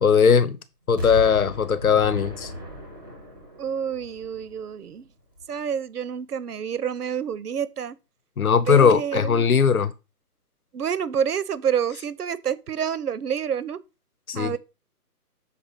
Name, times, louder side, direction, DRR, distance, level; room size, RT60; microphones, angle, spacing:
voice 1, 0.0-0.6 0.9-2.5 8.4-9.9 14.3-14.6, left 6 dB, 65° left, 1.0 m, -19 dB
Explosion, 1.0-4.9 5.4-5.5, left 1 dB, 15° right, 0.7 m, -35 dB
voice 2, 3.6-5.1 5.5-8.0 8.7-9.5 10.7-13.8 14.3-14.6, right 8 dB, 75° right, 0.9 m, -28 dB
6.7 x 4.3 x 5.3 m
hypercardioid pair, 175°, 47 cm